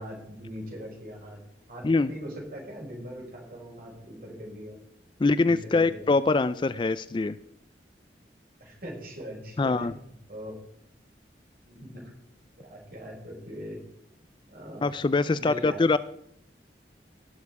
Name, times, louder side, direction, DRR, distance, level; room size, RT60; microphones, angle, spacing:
voice 1, 0.0-1.4 1.7-4.8 5.4-6.1 8.6-9.9 10.3-10.5 11.6-12.1 12.6-13.8 14.5-14.8 15.2-15.8, equal, 55° right, -2 dB, 6.0 m, -41 dB
voice 2, 5.2-7.4 9.6-9.9 14.8-16.0, left 3 dB, 25° left, 15 dB, 0.3 m, -23 dB
17.5 x 7.3 x 4.8 m, 0.73 s
head